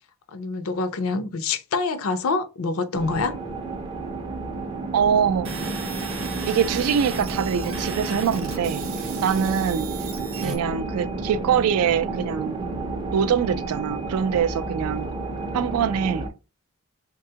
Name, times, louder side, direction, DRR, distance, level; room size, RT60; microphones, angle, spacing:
voice 1, 0.3-3.3, left 3 dB, 75° left, 0.5 m, -26 dB
sound 1, 2.9-16.3, right 3 dB, 20° right, 0.4 m, -31 dB
voice 2, 4.9-5.5 6.5-9.9 10.4-12.7 13.1-15.1 15.5-16.3, right 7 dB, 85° right, 0.3 m, -24 dB
sound 2, 5.4-10.6, right 4 dB, 65° right, 0.7 m, -36 dB
3.4 x 2.3 x 2.7 m
head